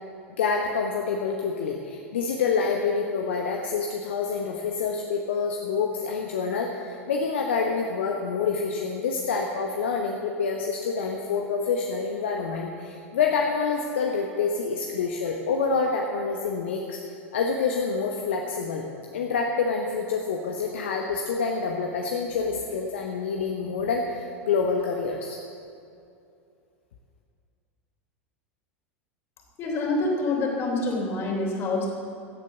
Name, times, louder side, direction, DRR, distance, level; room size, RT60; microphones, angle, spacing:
voice 1, 0.4-17.0 17.3-18.9 19.1-25.4, left 5 dB, 60° left, 2 dB, 1.0 m, -27 dB
voice 2, 29.6-31.9, left 2 dB, 35° left, 0 dB, 3.4 m, -26 dB
16.0 x 8.5 x 7.1 m, 2.6 s
figure-of-eight pair, 85°, 7 cm